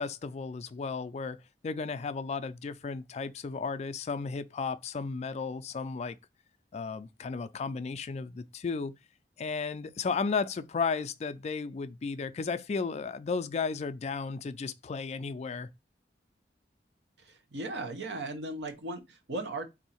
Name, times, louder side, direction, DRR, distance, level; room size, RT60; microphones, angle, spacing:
voice 1, 0.0-1.4 1.6-6.2 6.7-8.9 9.4-15.7, left 4 dB, 40° left, 0.3 m, -34 dB
voice 2, 17.2-19.6, right 2 dB, 85° right, 0.9 m, -37 dB
3.7 x 2.7 x 4.2 m
head